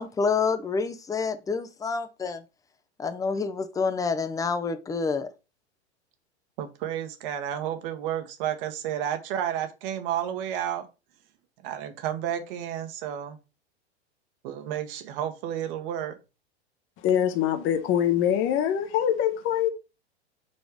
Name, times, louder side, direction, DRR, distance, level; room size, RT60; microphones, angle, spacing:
voice 1, 0.0-2.4 3.0-5.3, left 5 dB, 10° left, 0.6 m, -28 dB
voice 2, 6.6-10.9 11.6-13.4 14.4-16.2, right 10 dB, 55° right, 1.4 m, -31 dB
voice 3, 17.0-19.7, left 10 dB, 35° left, 1.0 m, -24 dB
4.5 x 4.3 x 5.0 m
hypercardioid pair, 115°, 34 cm